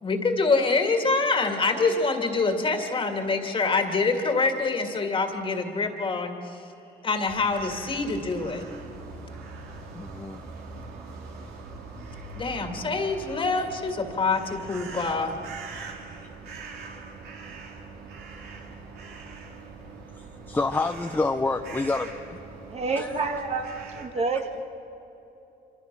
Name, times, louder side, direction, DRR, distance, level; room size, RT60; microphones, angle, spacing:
voice 1, 0.0-6.6 7.0-8.7 12.4-15.3, left 3 dB, 30° left, 5 dB, 2.2 m, -25 dB
sound 1, 7.3-24.1, right 4 dB, 70° right, 3.2 m, -42 dB
voice 2, 9.9-10.4 13.3-13.4 20.1-22.4 23.0-23.2, left 3 dB, 10° left, 5 dB, 0.8 m, -28 dB
voice 3, 22.7-24.6, right 4 dB, 40° right, 5 dB, 1.9 m, -29 dB
26.5 x 25.0 x 6.1 m, 2.9 s
cardioid pair, 110°, 17 cm